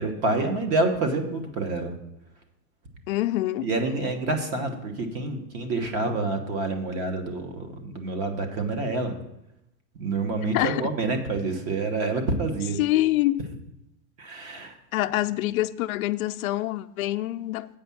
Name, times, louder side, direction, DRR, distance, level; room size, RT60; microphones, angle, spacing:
voice 1, 0.0-1.9 3.6-9.2 9.9-12.8 14.2-14.7, right 3 dB, 35° right, 1.2 m, -27 dB
voice 2, 3.1-3.7 10.5-10.8 12.8-13.4 14.9-17.7, left 16 dB, 70° left, 0.5 m, -25 dB
8.5 x 5.2 x 7.0 m
supercardioid pair, 160°, 43 cm